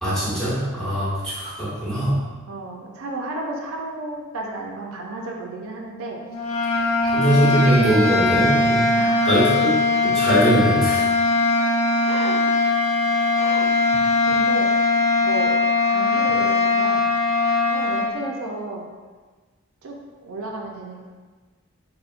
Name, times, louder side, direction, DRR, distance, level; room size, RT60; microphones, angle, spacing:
voice 1, 0.0-2.2 7.0-8.9 9.2-11.0, right 1 dB, 5° left, -12 dB, 1.1 m, -21 dB
voice 2, 2.5-6.2 9.0-9.4 12.1-12.6 13.4-14.7 15.2-15.5 15.8-17.1 17.7-18.9 19.8-21.1, right 2 dB, 85° right, 0 dB, 0.4 m, -33 dB
sound 1, 6.3-18.1, left 3 dB, 75° left, 0.4 m, -20 dB
3.8 x 2.1 x 2.4 m, 1.4 s
head